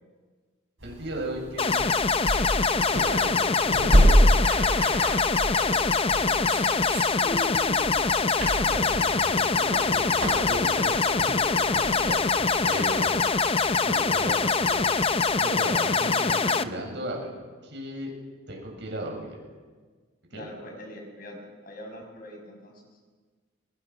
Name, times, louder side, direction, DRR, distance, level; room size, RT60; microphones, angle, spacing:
voice 1, 0.8-1.8 2.5-4.2 8.6-13.0 13.8-14.9 15.4-17.3 17.6-18.1 18.5-19.4 20.3-20.5, right 1 dB, 60° right, 0 dB, 7.5 m, -36 dB
sound 1, 0.8-15.4, equal, 80° right, 6.1 m, -28 dB
sound 2, 1.6-16.6, left 4 dB, 30° left, 0.7 m, -24 dB
voice 2, 5.5-6.9 7.2-8.1 20.3-22.7, left 1 dB, 45° left, 2 dB, 6.0 m, -41 dB
27.0 x 24.0 x 6.1 m, 1.4 s
head